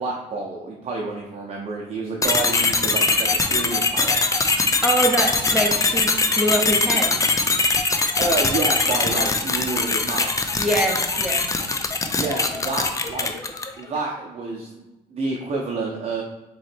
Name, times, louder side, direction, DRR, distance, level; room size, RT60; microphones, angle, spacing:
voice 1, 0.0-4.2 8.2-10.5 12.1-13.3 13.8-16.2, right 3 dB, 40° right, -1 dB, 0.7 m, -29 dB
sound 1, 2.2-13.8, left 3 dB, 20° left, 0.5 m, -22 dB
voice 2, 4.8-7.2 10.6-11.4, right 1 dB, 5° right, 0 dB, 0.9 m, -24 dB
3.8 x 3.1 x 4.4 m, 1.1 s
cardioid pair, 110°, 17 cm